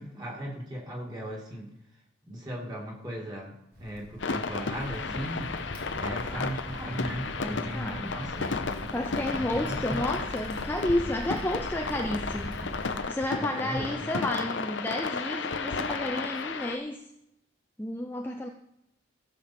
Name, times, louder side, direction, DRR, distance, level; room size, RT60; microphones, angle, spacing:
voice 1, 0.0-1.7 2.3-3.5 3.8-5.5 6.0-8.5 9.3-10.0 13.4-13.9, equal, 20° right, -3 dB, 2.2 m, -37 dB
Crackle, 3.7-13.0, equal, 50° right, 2.0 m, -41 dB
sound 1, 4.2-16.8, left 4 dB, 65° left, 0.8 m, -33 dB
voice 2, 6.2-6.6 7.4-8.2 8.9-12.7 13.1-17.0 17.8-18.5, left 1 dB, 10° left, 4 dB, 0.5 m, -32 dB
15.5 x 6.8 x 4.4 m, 0.82 s
head